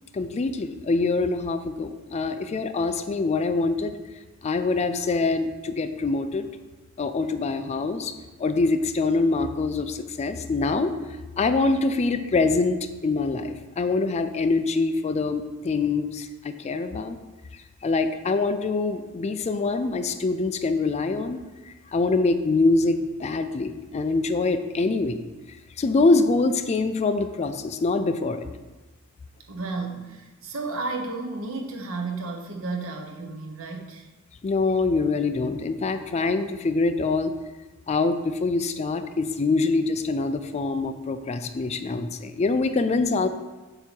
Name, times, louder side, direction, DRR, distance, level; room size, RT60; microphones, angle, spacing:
voice 1, 0.1-4.0 4.4-6.5 7.0-8.1 8.4-10.9 11.4-17.2 17.8-21.4 21.9-25.2 25.8-28.5 34.4-37.3 37.9-43.3, left 3 dB, 30° left, 9 dB, 0.3 m, -24 dB
voice 2, 29.5-34.1, right 3 dB, 70° right, 2 dB, 1.0 m, -32 dB
7.9 x 2.8 x 6.1 m, 1.2 s
head